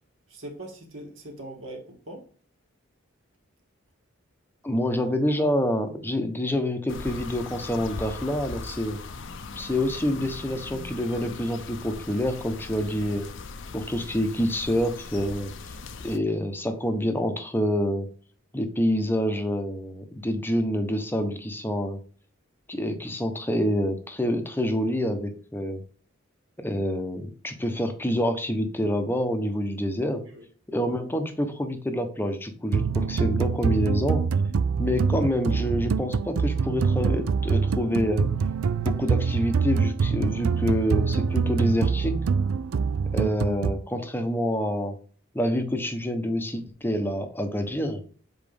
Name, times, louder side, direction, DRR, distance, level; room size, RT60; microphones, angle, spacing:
voice 1, 0.3-2.3 30.3-30.4, right 1 dB, 65° right, 2.0 m, -41 dB
voice 2, 4.6-9.0 9.5-13.3 13.7-15.5 16.0-18.1 18.5-22.0 22.7-25.8 26.6-30.2 30.7-34.2 34.8-38.3 38.8-42.2 43.1-45.0 45.3-48.0, equal, 10° left, 0.8 m, -27 dB
sound 1, 6.9-16.2, left 4 dB, 60° left, 0.6 m, -39 dB
sound 2, 32.7-43.7, right 5 dB, 85° right, 0.4 m, -25 dB
7.4 x 4.4 x 3.4 m
head